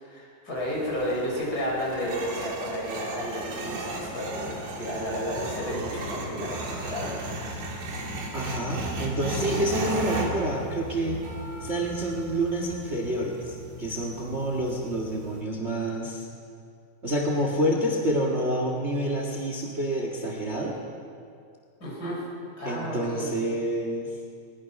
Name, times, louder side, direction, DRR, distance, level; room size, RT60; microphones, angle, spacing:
voice 1, 0.0-7.2 21.8-22.2 22.6-23.3, equal, 25° left, -5 dB, 6.5 m, -32 dB
sound 1, 0.6-15.4, right 1 dB, 85° right, 4.3 m, -35 dB
voice 2, 8.3-11.2 11.6-16.3 17.0-20.8 22.6-24.1, right 1 dB, 40° right, 0 dB, 0.9 m, -28 dB
22.0 x 20.0 x 6.0 m, 2.3 s
omnidirectional pair, 4.2 m